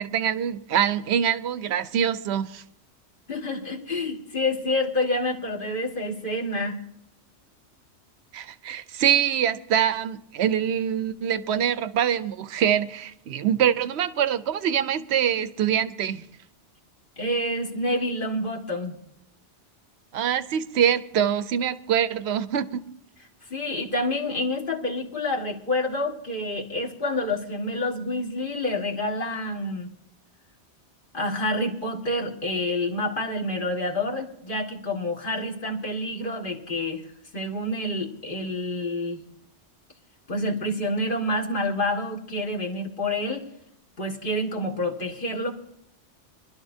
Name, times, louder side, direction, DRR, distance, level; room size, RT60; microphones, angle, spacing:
voice 1, 0.0-2.6 8.3-16.2 20.1-22.8, right 9 dB, 70° right, 0.9 m, -24 dB
voice 2, 3.3-6.8 17.2-19.0 23.5-29.9 31.1-37.0 37.3-39.2 40.3-43.4 44.0-45.5, left 1 dB, 45° left, 2.0 m, -28 dB
24.0 x 12.0 x 2.7 m
omnidirectional pair, 1.2 m